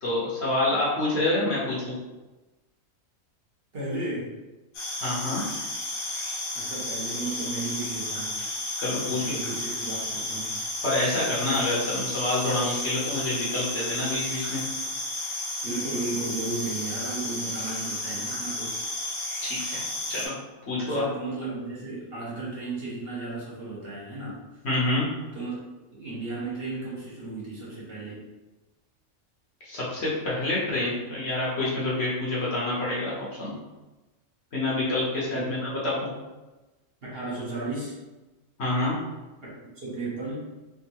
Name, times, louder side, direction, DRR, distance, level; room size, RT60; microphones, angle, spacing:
voice 1, 0.0-1.9 5.0-5.4 8.8-9.4 10.8-14.6 19.4-19.8 20.1-20.3 20.7-21.1 24.6-25.1 29.6-33.5 34.5-35.9 38.6-39.0, left 2 dB, 55° left, -6 dB, 1.1 m, -27 dB
voice 2, 3.7-4.3 6.5-8.7 9.1-10.6 15.6-18.8 20.8-24.4 25.3-25.6 25.9-28.3 35.3-35.4 37.0-38.0 39.4-40.4, right 3 dB, 50° right, -7 dB, 1.1 m, -34 dB
sound 1, 4.7-20.3, left 1 dB, 85° left, 1.3 m, -32 dB
3.5 x 2.5 x 2.9 m, 1.1 s
omnidirectional pair, 1.4 m